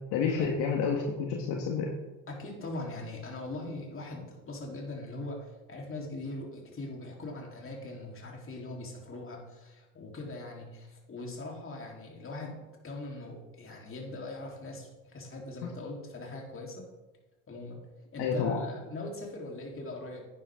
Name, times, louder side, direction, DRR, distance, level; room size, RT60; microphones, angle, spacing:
voice 1, 0.1-1.9 15.6-15.7 18.2-18.6, left 6 dB, 65° left, 1 dB, 1.7 m, -29 dB
voice 2, 2.3-12.6 12.8-16.9 17.5-17.8 18.1-20.2, left 2 dB, 30° left, -1 dB, 3.8 m, -41 dB
11.0 x 9.7 x 3.8 m, 1.1 s
hypercardioid pair, 75°, 43 cm